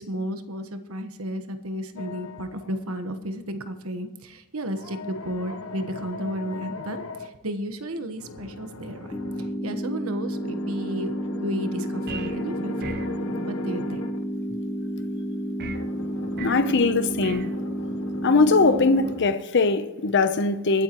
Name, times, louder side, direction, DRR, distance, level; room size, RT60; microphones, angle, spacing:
voice 1, 0.0-9.1 9.6-12.9 13.5-14.1, right 1 dB, 75° right, 9 dB, 1.3 m, -33 dB
sound 1, 2.0-2.9 4.7-7.3 8.2-9.5 10.2-14.2 15.6-19.3, left 2 dB, 75° left, 1.1 m, -39 dB
sound 2, 9.1-19.1, equal, 15° left, 1.0 m, -31 dB
sound 3, 12.1-12.4 12.8-13.2 15.6-15.9 16.4-16.7 17.2-17.5, right 4 dB, 50° right, 0.7 m, -37 dB
voice 2, 16.4-17.5 18.2-20.8, left 3 dB, 55° left, 10 dB, 0.8 m, -21 dB
23.0 x 9.1 x 3.1 m, 1.1 s
head